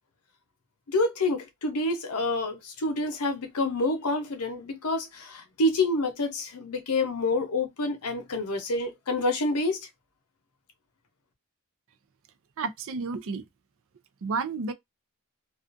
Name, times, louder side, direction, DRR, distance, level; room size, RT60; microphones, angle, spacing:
voice 1, 0.9-9.8, left 2 dB, 80° left, 0.8 m, -28 dB
voice 2, 12.6-13.4 14.2-14.7, right 4 dB, 65° right, 0.4 m, -31 dB
2.4 x 2.4 x 2.5 m
head